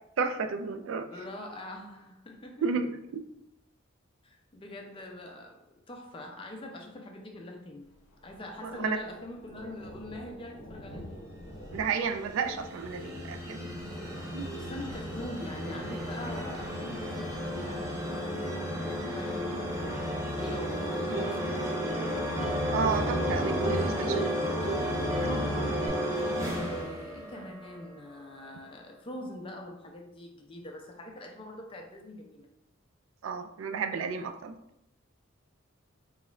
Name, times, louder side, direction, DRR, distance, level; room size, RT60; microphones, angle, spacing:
voice 1, 0.2-1.1 2.6-3.2 8.6-9.0 11.7-13.7 14.3-14.5 22.7-24.3 25.3-25.4 26.4-26.6 33.2-34.5, right 5 dB, 70° right, 8 dB, 0.3 m, -32 dB
voice 2, 1.1-2.7 4.2-7.9 8.2-11.3 14.5-19.9 20.3-22.6 23.1-24.5 24.9-26.1 26.4-32.5, left 1 dB, 25° left, 2 dB, 0.5 m, -43 dB
Thunder, 7.8-23.4, left 1 dB, 65° left, 0.8 m, -50 dB
sound 1, 11.7-27.8, equal, 15° right, 0.6 m, -33 dB
Plucked string instrument, 12.4-25.9, right 3 dB, 40° right, 1.3 m, -42 dB
3.9 x 2.4 x 3.1 m, 0.83 s
head